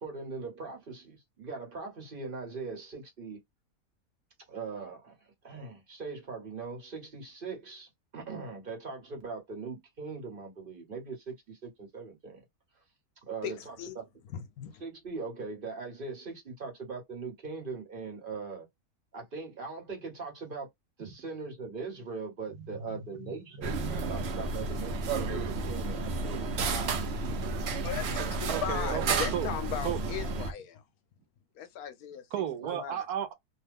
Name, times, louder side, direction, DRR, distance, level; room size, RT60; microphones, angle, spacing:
voice 1, 0.0-3.4 4.5-5.2 5.4-12.4 13.3-14.0 14.8-18.6 19.1-20.7 21.0-23.7 24.1-27.0 28.9-29.1 32.6-32.8, right 4 dB, 40° right, 1.2 m, -40 dB
voice 2, 13.4-14.0 14.3-14.8 27.8-30.8 31.5-32.3 32.8-33.1, left 9 dB, 75° left, 1.0 m, -38 dB
voice 3, 23.2-24.5 25.4-25.5 26.0-26.1 27.3-29.5 29.8-30.0 32.3-33.3, right 9 dB, 80° right, 1.2 m, -36 dB
sound 1, 23.6-30.5, right 3 dB, 55° right, 0.8 m, -32 dB
2.8 x 2.2 x 3.4 m
omnidirectional pair, 1.6 m